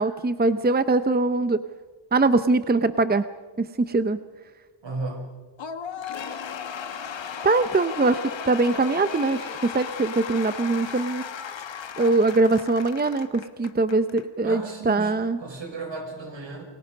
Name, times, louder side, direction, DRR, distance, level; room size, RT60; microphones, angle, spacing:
voice 1, 0.0-1.6 2.1-3.2 3.6-4.2 7.4-11.2 12.0-14.6 14.9-15.4, right 3 dB, 20° right, 11 dB, 0.8 m, -22 dB
voice 2, 4.8-5.3 14.4-16.6, right 3 dB, 70° right, 3 dB, 5.9 m, -34 dB
Cheering / Applause / Crowd, 5.6-14.2, left 7 dB, 70° left, 1.5 m, -36 dB
29.5 x 21.0 x 5.3 m, 1.4 s
wide cardioid pair, 85°, 46 cm